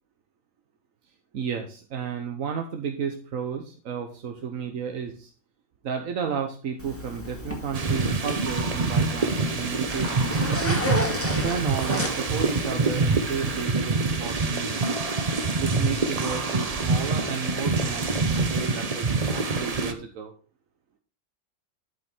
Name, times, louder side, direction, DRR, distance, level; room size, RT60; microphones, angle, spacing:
voice 1, 1.3-5.3 5.8-10.8 11.3-14.9 15.6-20.3, right 6 dB, 85° right, 4 dB, 1.4 m, -32 dB
Zipper (clothing), 6.8-13.6, left 1 dB, 10° left, 1.7 m, -34 dB
sound 1, 7.7-19.9, right 3 dB, 35° right, 0.8 m, -26 dB
12.0 x 5.4 x 4.4 m, 0.39 s
omnidirectional pair, 1.4 m